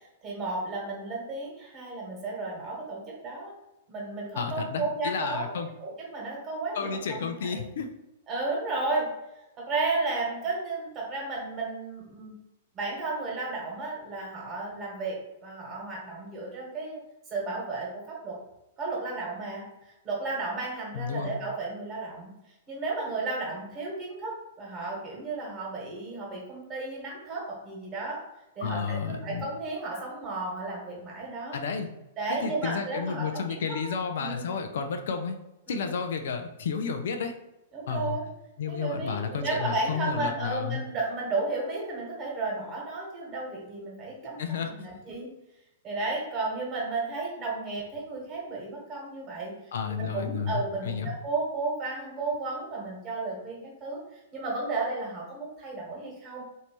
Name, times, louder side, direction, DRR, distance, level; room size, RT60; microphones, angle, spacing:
voice 1, 0.0-3.5 3.9-5.5 5.8-7.6 8.3-9.1 9.6-12.3 12.7-17.0 17.3-18.4 18.8-19.6 20.0-22.3 22.7-28.2 28.5-31.5 32.2-33.6 34.2-34.5 35.7-36.0 37.7-38.2 38.7-45.3 45.8-49.5 50.0-56.4, right 3 dB, 30° right, -3 dB, 1.4 m, -33 dB
voice 2, 4.4-5.7 6.7-7.9 20.9-21.4 28.6-29.5 31.5-31.9 32.3-35.4 35.7-37.3 37.9-38.2 38.6-40.8 44.4-45.0 49.7-51.1, left 6 dB, 65° left, 6 dB, 0.4 m, -32 dB
3.1 x 2.7 x 3.0 m, 0.92 s
hypercardioid pair, 110°, 0 cm